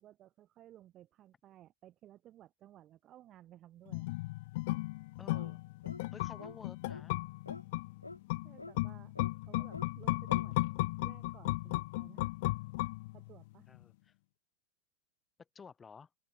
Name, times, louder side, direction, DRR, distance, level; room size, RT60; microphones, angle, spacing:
voice 1, 0.0-4.1 8.4-9.2 9.4-10.6 11.0-12.2 13.1-13.7, right 13 dB, 30° right, 6.0 m, -57 dB
sound 1, 3.9-13.4 13.7-13.8, left 21 dB, 50° left, 0.5 m, -36 dB
voice 2, 5.2-5.6 6.1-7.2 13.7-14.1 15.5-16.1, left 6 dB, 15° left, 3.6 m, -52 dB
sound 2, 5.3-5.6 5.8-6.0 6.4-6.6 6.9-7.1 7.5-7.6 8.0-8.2 8.6-8.8 9.2-9.3 9.7-9.9 10.3-10.5, left 2 dB, 85° left, 1.4 m, -47 dB
open air
figure-of-eight pair, 90°, 0 cm